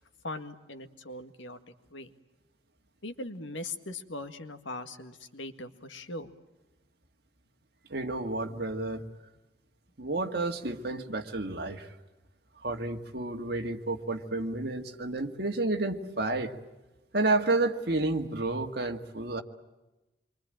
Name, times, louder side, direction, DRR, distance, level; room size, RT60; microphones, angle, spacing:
voice 1, 0.2-1.6 1.9-2.1 3.0-6.3 10.2-10.3, left 2 dB, 90° left, 8 dB, 1.9 m, -40 dB
voice 2, 7.9-9.1 10.0-11.9 12.6-16.5 17.1-19.4, right 2 dB, 55° right, 4 dB, 1.9 m, -30 dB
27.5 x 24.0 x 9.0 m, 1.0 s
head